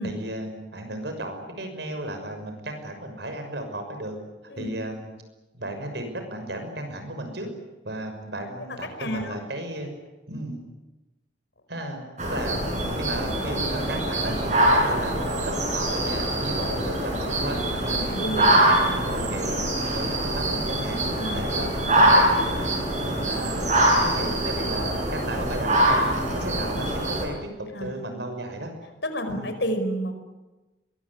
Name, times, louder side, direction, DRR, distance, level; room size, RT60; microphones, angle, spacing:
voice 1, 0.0-4.2 4.6-5.1 5.5-7.5 7.8-9.9 10.3-10.6 11.7-15.2 15.4-18.0 18.3-21.0 21.3-22.7 23.0-26.0 26.3-28.7 29.3-29.5, right 1 dB, 65° right, 6 dB, 6.3 m, -34 dB
voice 2, 9.0-9.3 17.9-18.5 21.2-21.4 27.7-27.9 29.0-30.2, equal, 65° left, 7 dB, 5.2 m, -30 dB
sound 1, 12.2-27.2, right 1 dB, 40° right, 7.5 m, -23 dB
22.5 x 22.5 x 9.9 m, 1.1 s
head